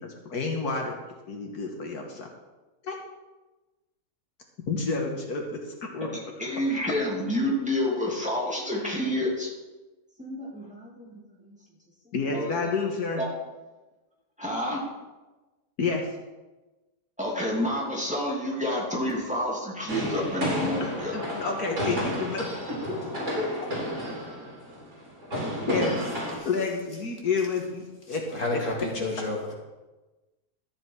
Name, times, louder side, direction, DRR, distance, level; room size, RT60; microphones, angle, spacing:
voice 1, 0.0-1.0 1.3-2.3 2.8-3.0 4.7-6.1 12.1-13.2 15.8-16.0 21.1-22.5 25.7-26.0 26.5-28.2 28.5-28.6, left 4 dB, 70° left, 1 dB, 1.9 m, -29 dB
voice 2, 6.4-9.5 10.2-11.1 11.5-11.6 12.3-12.6 13.2-13.3 14.4-14.8 17.2-21.1 23.1-23.5, left 1 dB, 5° right, -4 dB, 2.7 m, -29 dB
sound 1, 19.9-26.4, equal, 50° right, 4.0 m, -32 dB
voice 3, 28.1-29.5, left 2 dB, 50° left, -1 dB, 2.3 m, -31 dB
13.0 x 8.7 x 4.7 m, 1.1 s
omnidirectional pair, 1.7 m